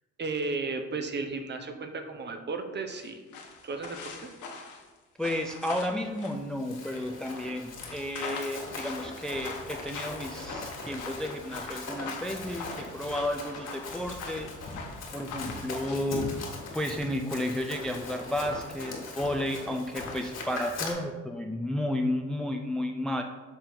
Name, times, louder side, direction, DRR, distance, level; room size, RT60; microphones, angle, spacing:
voice 1, 0.2-3.2 3.6-4.1, right 3 dB, 35° right, 6 dB, 0.8 m, -34 dB
sound 1, 2.9-17.0 17.3-18.7 18.9-19.2 19.5-19.7 20.0-20.7, left 4 dB, 75° left, 1.1 m, -43 dB
voice 2, 5.2-14.5 15.1-16.4 16.7-23.2, left 1 dB, ahead, 5 dB, 0.4 m, -32 dB
Run, 6.4-20.9, left 3 dB, 60° left, 1.8 m, -40 dB
6.7 x 3.8 x 4.4 m, 1.3 s
cardioid pair, 90°, 30 cm